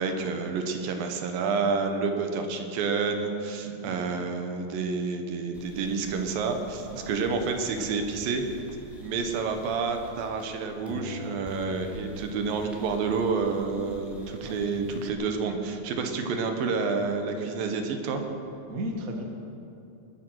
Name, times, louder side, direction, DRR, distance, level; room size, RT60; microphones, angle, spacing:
voice 1, 0.0-8.4 9.0-18.2, right 4 dB, 75° right, 5 dB, 2.8 m, -29 dB
sound 1, 5.5-10.6 10.9-15.1, left 1 dB, ahead, 2.1 m, -45 dB
voice 2, 18.7-19.2, equal, 50° right, 2 dB, 1.0 m, -35 dB
22.0 x 10.0 x 6.3 m, 2.7 s
omnidirectional pair, 4.3 m